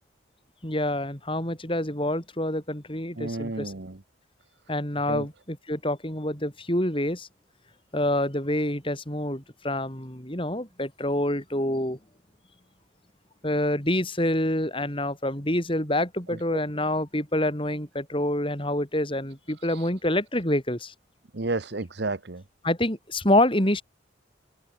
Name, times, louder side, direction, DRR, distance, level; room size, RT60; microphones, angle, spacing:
voice 1, 0.6-3.7 4.7-7.3 7.9-12.0 13.4-20.9 22.6-23.8, left 1 dB, 25° left, 5.8 m, -27 dB
voice 2, 3.2-4.0 5.1-5.3 21.3-22.4, right 2 dB, 60° right, 1.1 m, -31 dB
open air
head